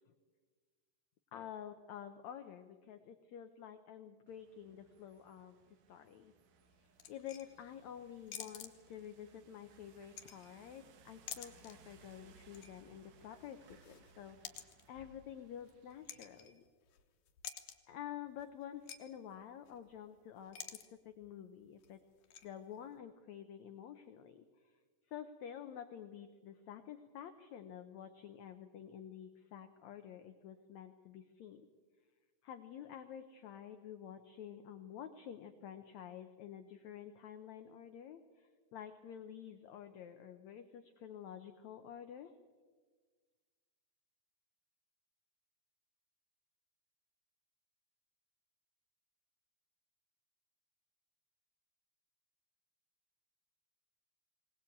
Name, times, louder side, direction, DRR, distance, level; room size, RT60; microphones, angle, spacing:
voice 1, 1.3-5.6 5.9-6.3 7.1-16.6 17.9-22.0 22.4-24.8 25.1-31.7 32.4-42.3, left 9 dB, 90° left, 8 dB, 1.5 m, -50 dB
sound 1, 4.3-16.5, right 5 dB, 65° right, 2.5 m, -65 dB
sound 2, 7.0-7.7 8.3-9.2 9.9-10.8 11.1-11.9 12.2-12.8 13.1-17.0 17.3-17.9 18.4-18.5 18.7-19.0 19.3-19.4 19.6-20.0 20.4-20.9 21.2-21.3 21.8-22.5, left 9 dB, 65° left, 2.2 m, -50 dB
21.0 x 18.5 x 8.6 m, 1.5 s
omnidirectional pair, 4.5 m